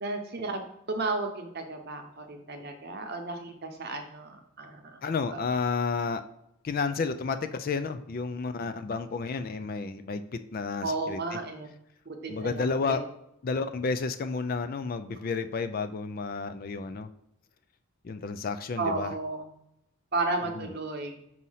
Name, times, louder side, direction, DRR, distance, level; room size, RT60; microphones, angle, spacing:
voice 1, 0.0-5.0 5.3-5.4 10.8-11.7 12.1-13.0 18.8-19.5 20.1-21.2, right 3 dB, 45° right, 5 dB, 0.8 m, -33 dB
voice 2, 5.0-6.2 6.6-11.4 12.3-13.0 13.4-17.1 18.0-19.1 20.6-20.7, left 4 dB, 40° left, 10 dB, 0.3 m, -31 dB
6.2 x 2.7 x 5.5 m, 0.80 s
head